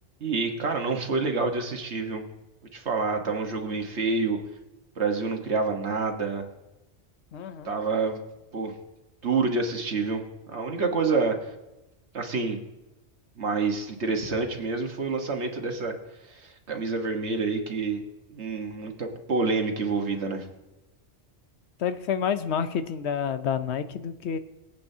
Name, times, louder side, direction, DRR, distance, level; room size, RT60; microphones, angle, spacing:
voice 1, 0.2-2.2 2.7-4.4 5.0-6.4 7.6-8.2 8.5-8.7 9.2-11.5 12.1-12.6 13.4-15.9 16.2-18.0 18.3-20.4, right 4 dB, 75° right, 3 dB, 1.7 m, -28 dB
voice 2, 7.3-7.7 21.8-24.4, left 7 dB, 75° left, 11 dB, 1.0 m, -29 dB
22.5 x 8.5 x 2.8 m, 1.0 s
omnidirectional pair, 1.2 m